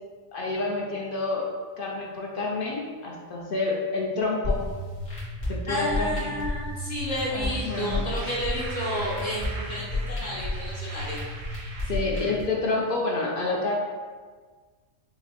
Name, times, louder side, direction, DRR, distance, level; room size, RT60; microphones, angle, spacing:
voice 1, 0.3-1.5 1.8-4.6 5.5-6.3 7.3-8.0 11.9-13.7, left 3 dB, 55° left, -2 dB, 0.6 m, -28 dB
sound 1, 4.4-12.4, left 2 dB, 75° left, 1.8 m, -32 dB
voice 2, 5.7-11.2, equal, 35° left, -7 dB, 1.1 m, -31 dB
sound 2, 7.5-12.4, right 3 dB, 90° right, 1.0 m, -42 dB
5.7 x 2.0 x 2.9 m, 1.5 s
omnidirectional pair, 1.3 m